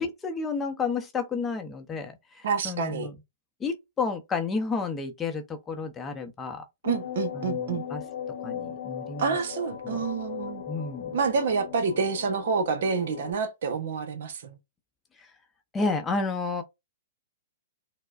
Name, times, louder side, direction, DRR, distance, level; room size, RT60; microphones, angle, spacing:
voice 1, 0.0-3.1 3.6-6.6 7.3-8.0 8.4-9.4 9.8-10.0 10.7-11.2 15.2-15.3 15.7-16.6, left 4 dB, 15° left, 0.6 m, -31 dB
voice 2, 2.4-3.1 6.8-7.8 9.2-10.6 11.1-14.6, right 5 dB, 65° right, 0.8 m, -28 dB
sound 1, 6.8-13.3, left 9 dB, 70° left, 0.9 m, -37 dB
4.4 x 2.1 x 2.4 m
hypercardioid pair, 135°, 0 cm